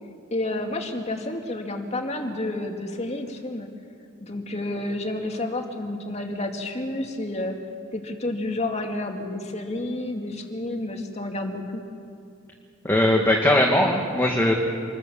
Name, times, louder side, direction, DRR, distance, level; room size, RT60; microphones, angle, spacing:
voice 1, 0.3-3.7 4.2-7.6 7.9-11.8, left 2 dB, 35° left, 3 dB, 2.4 m, -30 dB
voice 2, 12.8-14.5, left 1 dB, 15° left, 0 dB, 2.0 m, -20 dB
26.5 x 22.0 x 7.2 m, 2.5 s
head